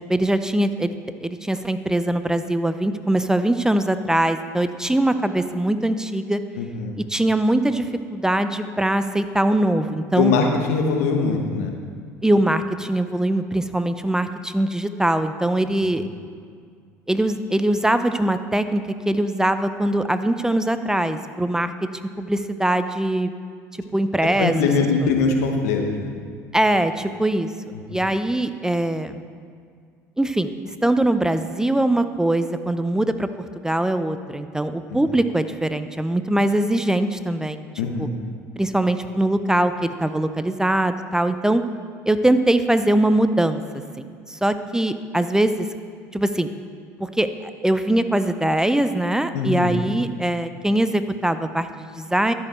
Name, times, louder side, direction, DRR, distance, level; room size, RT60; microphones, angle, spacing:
voice 1, 0.1-0.9 1.2-6.4 7.1-10.3 12.2-16.0 17.1-21.7 22.2-23.3 23.9-24.5 26.5-27.5 27.9-29.2 30.2-30.5 30.8-37.7 38.0-38.1 38.6-41.6 42.1-43.6 44.0-45.7 46.1-46.5 47.0-47.3 47.6-52.3, right 1 dB, 5° right, 10 dB, 0.5 m, -22 dB
voice 2, 6.6-7.0 10.2-11.7 15.9-16.1 24.2-26.1 27.7-27.8 34.9-35.1 37.8-38.2 49.3-49.8, left 4 dB, 80° left, 3 dB, 1.1 m, -22 dB
12.5 x 6.7 x 4.3 m, 2.1 s
hypercardioid pair, 70°, 8 cm